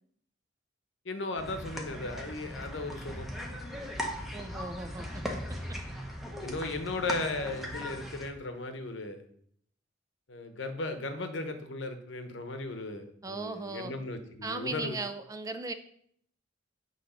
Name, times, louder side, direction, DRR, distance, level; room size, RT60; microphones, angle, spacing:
voice 1, 1.0-3.5 6.4-9.2 10.3-15.0, left 2 dB, 70° left, 7 dB, 0.9 m, -36 dB
sound 1, 1.4-8.3, equal, ahead, 0.9 m, -38 dB
voice 2, 4.3-5.4 5.7-5.8 13.2-13.9 14.4-15.7, right 3 dB, 20° right, 9 dB, 0.4 m, -37 dB
8.7 x 3.1 x 5.5 m, 0.66 s
head